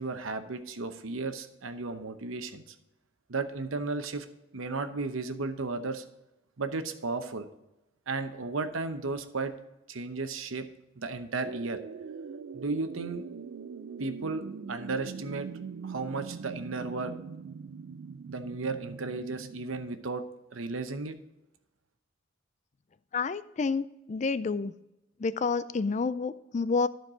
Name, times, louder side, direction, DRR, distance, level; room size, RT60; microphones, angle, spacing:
voice 1, 0.0-2.6 3.3-4.3 4.5-6.0 6.6-7.5 8.1-9.5 9.9-10.7 11.0-11.8 12.5-13.2 14.0-14.4 14.7-15.5 15.8-17.1 18.3-20.2 20.5-21.2, right 3 dB, 80° right, 8 dB, 0.9 m, -34 dB
sound 1, 11.4-20.0, right 6 dB, 65° right, 0.3 m, -42 dB
voice 2, 23.1-24.7 25.2-26.9, left 4 dB, 35° left, 16 dB, 0.3 m, -29 dB
13.0 x 4.6 x 4.9 m, 0.94 s
head